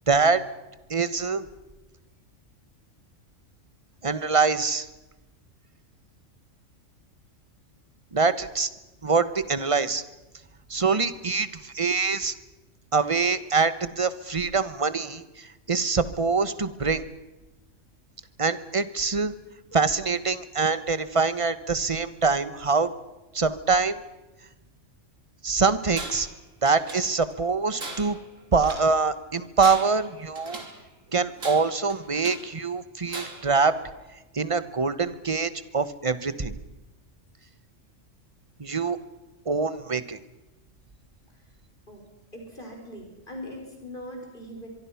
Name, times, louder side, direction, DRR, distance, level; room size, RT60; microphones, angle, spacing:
voice 1, 0.1-0.4 0.9-1.4 4.0-4.9 8.1-8.7 9.0-10.0 10.7-12.3 12.9-17.0 18.4-19.3 19.7-22.9 23.3-24.0 25.4-26.3 26.6-28.2 28.5-30.6 31.1-33.7 34.3-36.5 38.6-39.0 39.5-40.2, right 4 dB, 25° right, 14 dB, 1.1 m, -24 dB
Tools, 25.9-26.4 26.7-27.4 27.8-28.9 29.4-30.8 31.4-32.5 33.1-33.6, right 2 dB, 80° right, 3.8 m, -39 dB
voice 2, 42.3-44.7, equal, 40° left, 1 dB, 5.0 m, -40 dB
24.0 x 24.0 x 5.9 m, 1.1 s
omnidirectional pair, 1.3 m